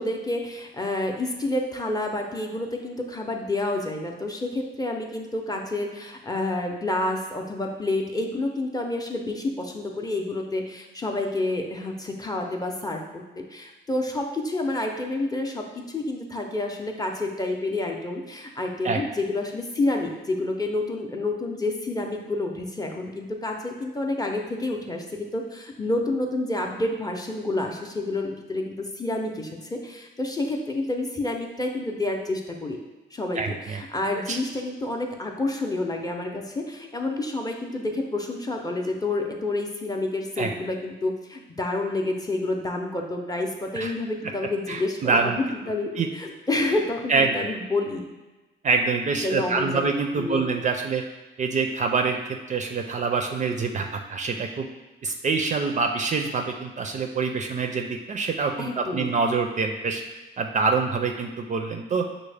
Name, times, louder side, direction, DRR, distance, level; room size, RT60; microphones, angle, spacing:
voice 1, 0.0-32.8 33.1-48.1 49.2-49.8 50.1-50.4 58.6-59.1, left 2 dB, 20° left, 2 dB, 0.5 m, -29 dB
voice 2, 33.4-33.8 34.3-34.4 40.4-40.5 43.7-43.9 44.7-45.4 46.0-46.1 47.1-47.5 48.6-51.0 51.4-52.2 52.5-54.7 55.0-60.0 60.4-62.1, right 4 dB, 40° right, 4 dB, 0.4 m, -25 dB
6.0 x 2.1 x 3.3 m, 1.1 s
cardioid pair, 90°, 20 cm